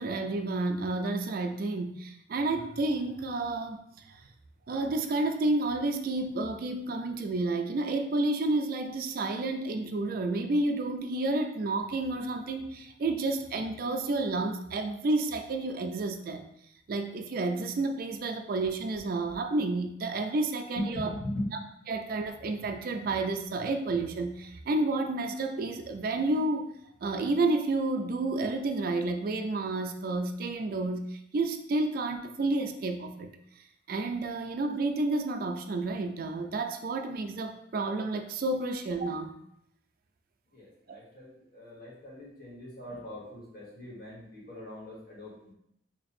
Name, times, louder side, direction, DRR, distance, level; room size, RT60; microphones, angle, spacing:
voice 1, 0.0-3.8 4.1-4.2 4.7-16.4 16.9-21.1 21.9-26.7 27.0-33.3 33.9-39.3, right 2 dB, 50° right, 5 dB, 0.3 m, -30 dB
voice 2, 20.8-21.5 40.5-45.5, left 1 dB, 50° left, -5 dB, 1.4 m, -40 dB
3.0 x 2.4 x 4.2 m, 0.76 s
head